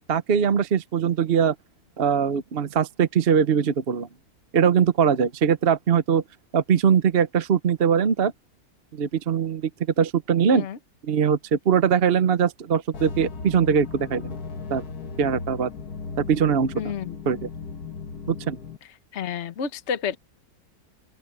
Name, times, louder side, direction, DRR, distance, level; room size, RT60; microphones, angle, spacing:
voice 1, 0.0-1.5 2.0-4.1 4.5-6.2 6.5-8.3 8.9-9.7 10.0-10.7 11.0-14.3 14.7-14.8 15.2-15.7 16.3-16.7 17.3-17.5 18.3-18.6, right 7 dB, 45° right, 0.9 m, -21 dB
sound 1, 12.9-18.8, left 4 dB, 70° left, 2.0 m, -36 dB
voice 2, 16.7-17.2 19.1-20.2, left 7 dB, 50° left, 1.3 m, -30 dB
open air
omnidirectional pair, 1.7 m